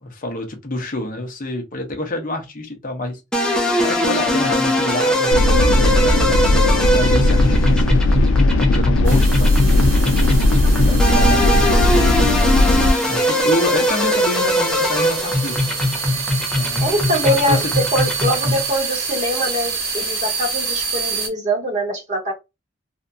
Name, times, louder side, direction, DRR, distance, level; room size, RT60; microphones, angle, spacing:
voice 1, 0.0-3.5 3.8-8.3 8.6-10.0 10.7-12.4 13.1-15.7 16.5-17.7, left 2 dB, 45° left, 0.8 m, -28 dB
sound 1, 3.3-18.7, equal, 5° left, 0.5 m, -20 dB
sound 2, 5.3-12.9, left 1 dB, 85° left, 0.3 m, -16 dB
sound 3, 9.0-21.3, right 5 dB, 85° right, 0.9 m, -27 dB
voice 2, 16.8-17.6 17.9-22.3, equal, 40° right, 0.9 m, -23 dB
2.6 x 2.2 x 2.6 m
head